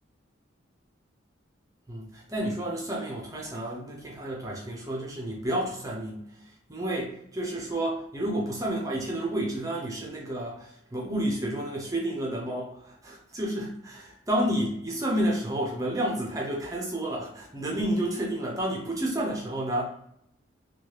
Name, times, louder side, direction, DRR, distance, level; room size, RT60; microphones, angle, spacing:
voice 1, 1.9-19.9, right 1 dB, 15° right, -2 dB, 0.5 m, -30 dB
3.1 x 2.3 x 2.9 m, 0.77 s
head